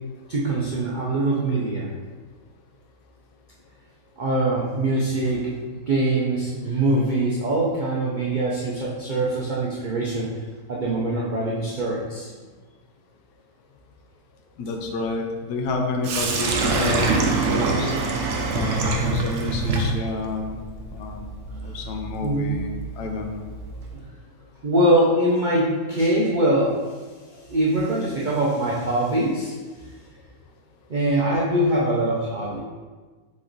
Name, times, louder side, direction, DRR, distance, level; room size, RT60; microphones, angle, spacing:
voice 1, 0.3-1.9 4.2-10.3 10.7-12.3 22.2-22.5 24.6-26.8 27.5-29.6 30.9-32.6, right 1 dB, 80° right, -5 dB, 0.4 m, -23 dB
voice 2, 14.6-17.9 18.5-20.6 20.9-21.3 21.6-23.4, left 3 dB, 90° left, 3 dB, 1.2 m, -29 dB
Sink (filling or washing), 16.0-24.0, right 3 dB, 65° right, 0.8 m, -26 dB
4.1 x 3.1 x 3.9 m, 1.4 s
omnidirectional pair, 1.6 m